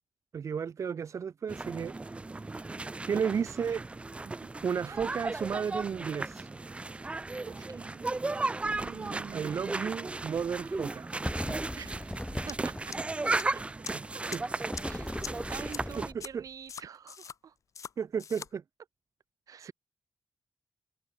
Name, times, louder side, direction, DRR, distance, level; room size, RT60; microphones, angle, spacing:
voice 1, 0.3-1.9 3.1-3.8 4.6-6.5 9.3-11.1 13.5-13.6 13.9-14.0 14.3-14.4 16.1-16.4 18.0-18.6 19.6-19.7, right 7 dB, 55° right, 1.1 m, -33 dB
sound 1, 1.5-16.1, right 3 dB, 20° right, 0.7 m, -35 dB
voice 2, 3.1-3.5 4.2-4.5 7.4-8.1 8.8-9.7 11.5-12.9 14.8-17.5 19.5-19.7, right 8 dB, 75° right, 2.8 m, -47 dB
sound 2, 8.7-9.0 9.3-9.4 11.3-13.1 14.7-16.5, left 1 dB, 5° left, 2.0 m, -38 dB
sound 3, 12.5-12.6 12.9-13.4 13.8-13.9 14.3-14.4 14.7-14.8 15.2-15.3 15.7-15.8 16.2-16.3 16.7-17.3 17.7-17.9 18.2-18.5, left 7 dB, 60° left, 5.0 m, -41 dB
open air
wide cardioid pair, 160°, 6 cm